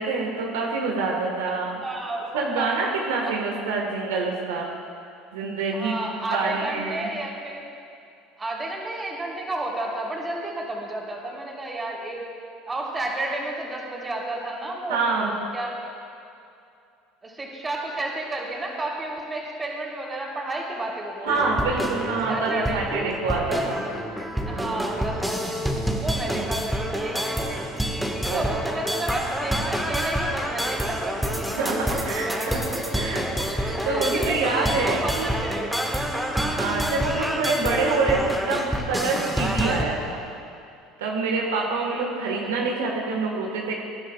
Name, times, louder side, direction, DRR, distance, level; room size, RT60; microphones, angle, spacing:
voice 1, 0.0-1.7 2.3-4.7 5.3-5.9 6.3-7.1 14.9-15.3 21.2-23.8 24.5-24.8 26.3-26.5 28.3-28.4 31.6-32.6 32.9-33.2 33.5-35.5 36.6-40.2 41.0-43.8, right 3 dB, 85° right, -1 dB, 1.5 m, -26 dB
voice 2, 1.8-2.9 3.2-3.3 5.7-7.6 8.4-12.2 12.7-15.9 17.2-21.7 22.3-23.1 23.5-24.0 24.4-25.6 25.9-27.7 28.2-32.6 33.6-35.9 36.6-36.7 41.8-42.1 42.4-42.5, right 2 dB, 20° right, -2 dB, 3.3 m, -32 dB
sound 1, 21.3-39.8, equal, 5° right, 1.5 m, -28 dB
21.0 x 11.0 x 2.4 m, 2.6 s
hypercardioid pair, 80°, 0 cm